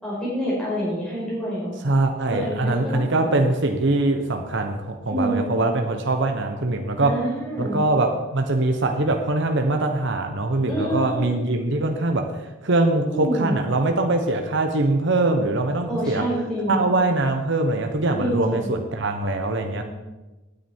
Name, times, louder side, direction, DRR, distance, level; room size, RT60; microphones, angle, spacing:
voice 1, 0.0-1.8 2.3-3.4 5.0-5.6 7.0-7.8 10.7-11.3 13.1-13.5 15.9-16.8 18.2-18.7 19.6-19.8, right 1 dB, 5° left, -8 dB, 5.2 m, -27 dB
voice 2, 1.8-7.2 7.6-16.3 16.7-19.8, right 2 dB, 65° right, 5 dB, 1.2 m, -22 dB
17.0 x 9.6 x 4.6 m, 1.1 s
head